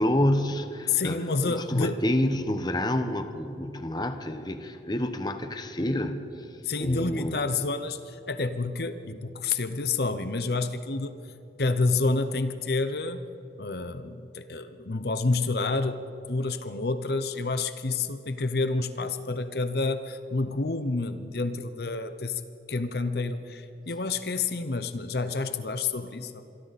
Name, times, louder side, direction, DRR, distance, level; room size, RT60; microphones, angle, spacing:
voice 1, 0.0-6.5 6.8-7.6, left 1 dB, 25° left, 8 dB, 1.0 m, -28 dB
voice 2, 0.9-2.0 6.6-11.1 11.6-13.3 13.6-16.0 16.3-22.4 22.7-26.4, left 3 dB, 60° left, 11 dB, 0.8 m, -29 dB
26.0 x 23.5 x 4.2 m, 3.0 s
head